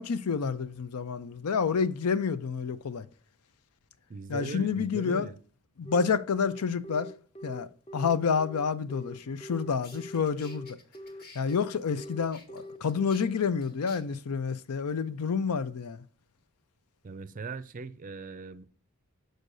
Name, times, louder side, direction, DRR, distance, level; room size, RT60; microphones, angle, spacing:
voice 1, 0.0-3.0 4.3-5.3 5.8-7.1 7.4-10.7 11.4-16.0, left 6 dB, 90° left, 0.5 m, -29 dB
voice 2, 4.1-5.4 17.0-18.6, right 4 dB, 35° right, 0.4 m, -39 dB
Telephone, 5.9-13.3, equal, 25° left, 0.7 m, -43 dB
sound 1, 9.4-9.5 9.8-14.0, left 3 dB, 45° left, 1.4 m, -53 dB
6.4 x 6.4 x 2.6 m
head